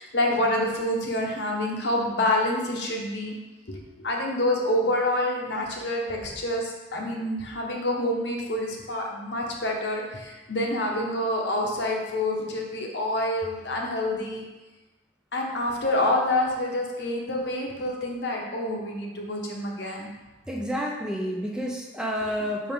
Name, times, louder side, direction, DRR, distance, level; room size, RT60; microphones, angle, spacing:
voice 1, 0.0-3.3 3.7-14.4 15.3-20.1, left 1 dB, 70° left, -1 dB, 1.1 m, -27 dB
voice 2, 20.5-22.7, equal, 5° right, -1 dB, 0.5 m, -29 dB
5.8 x 4.7 x 3.6 m, 1.1 s
head